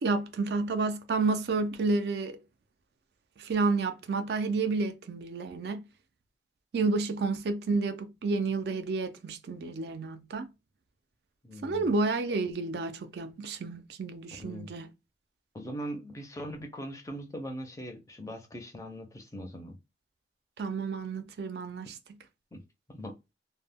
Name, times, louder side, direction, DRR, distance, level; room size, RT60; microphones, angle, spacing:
voice 1, 0.0-2.3 3.4-5.8 6.7-10.5 11.6-14.9 20.6-21.9, right 3 dB, 65° right, 0.4 m, -30 dB
voice 2, 11.4-11.9 14.3-14.7 15.5-19.8 22.5-22.6 22.9-23.2, equal, 20° left, 0.4 m, -40 dB
2.1 x 2.0 x 3.4 m
head